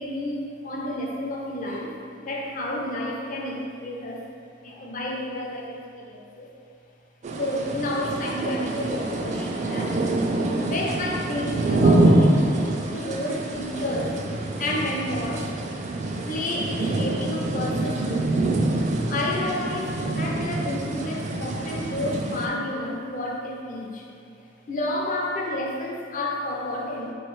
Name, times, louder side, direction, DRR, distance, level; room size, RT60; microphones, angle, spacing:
voice 1, 0.0-4.2 4.6-6.5 7.4-10.0 10.5-14.2 14.6-15.5 16.3-18.5 19.1-24.1 24.7-27.1, left 1 dB, 45° left, -1 dB, 0.5 m, -30 dB
sound 1, 7.2-22.5, right 2 dB, 40° right, 0.3 m, -25 dB
4.2 x 3.1 x 3.1 m, 2.3 s
head